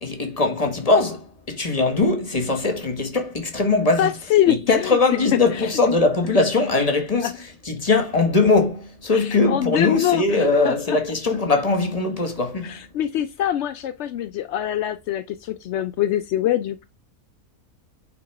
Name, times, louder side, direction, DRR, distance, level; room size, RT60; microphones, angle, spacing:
voice 1, 0.0-4.1 4.5-12.8, left 3 dB, 25° left, 1.5 m, -21 dB
voice 2, 4.0-5.0 7.2-7.3 9.1-11.0 12.6-16.8, left 11 dB, 75° left, 0.6 m, -24 dB
8.5 x 3.9 x 4.8 m
omnidirectional pair, 1.7 m